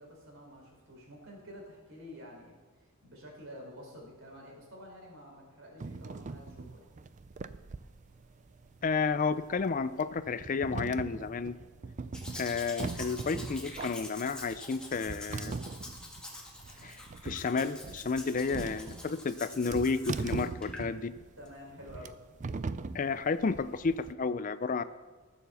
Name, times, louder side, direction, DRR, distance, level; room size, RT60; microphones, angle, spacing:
voice 1, 0.0-6.9 21.4-22.2, equal, 65° right, -1 dB, 4.2 m, -49 dB
sound 1, 5.8-24.1, right 3 dB, 35° right, 0.4 m, -41 dB
voice 2, 8.8-11.5 12.4-15.5 16.8-21.1 22.9-24.8, left 4 dB, 40° left, 14 dB, 0.4 m, -31 dB
Domestic sounds home sounds, 12.1-20.9 21.5-21.6, left 1 dB, 5° left, 1.8 m, -46 dB
14.5 x 7.1 x 6.9 m, 1.3 s
head